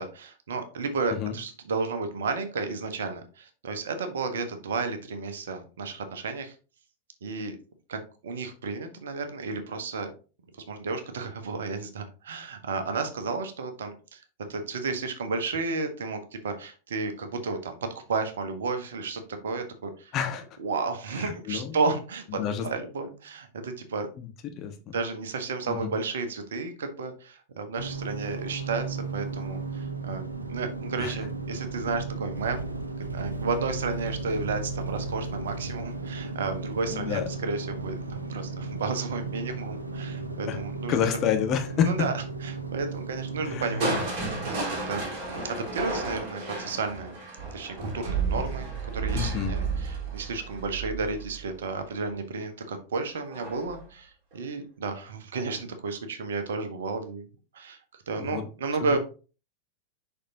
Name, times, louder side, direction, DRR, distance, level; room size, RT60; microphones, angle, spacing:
voice 1, 0.0-6.5 7.2-7.6 7.9-10.1 10.7-14.2 14.5-17.8 18.1-20.1 20.6-24.1 24.9-30.2 30.5-32.7 33.1-40.9 41.9-44.0 44.4-47.1 47.5-57.2 57.5-57.8 58.1-59.0, right 4 dB, 65° right, 7 dB, 1.3 m, -32 dB
voice 2, 20.1-20.4 21.2-21.8 22.3-22.7 24.2-24.3 24.6-24.7 25.7-25.9 31.0-31.1 36.9-37.3 40.5-40.6 40.9-42.1 43.4-44.1 49.1-49.6 58.2-58.5 58.8-59.0, left 8 dB, 35° left, 5 dB, 1.3 m, -29 dB
sound 1, 27.7-45.1, right 4 dB, 80° right, 0.9 m, -35 dB
Crushing, 43.8-51.7 53.3-53.8 54.3-54.4, right 4 dB, 40° right, 3.9 m, -32 dB
6.6 x 5.8 x 2.8 m, 0.34 s
figure-of-eight pair, 90°, 0 cm